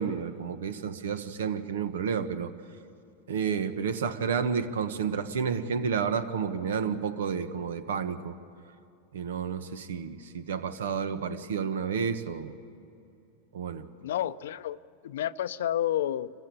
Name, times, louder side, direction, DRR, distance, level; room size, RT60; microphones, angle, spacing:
voice 1, 0.0-2.5 3.3-8.3 9.1-12.5 13.5-13.8, right 6 dB, 85° right, 10 dB, 1.3 m, -30 dB
voice 2, 14.0-14.8 15.0-16.3, left 11 dB, 75° left, 15 dB, 0.6 m, -30 dB
26.5 x 15.0 x 8.6 m, 2.7 s
hypercardioid pair, 115°, 0 cm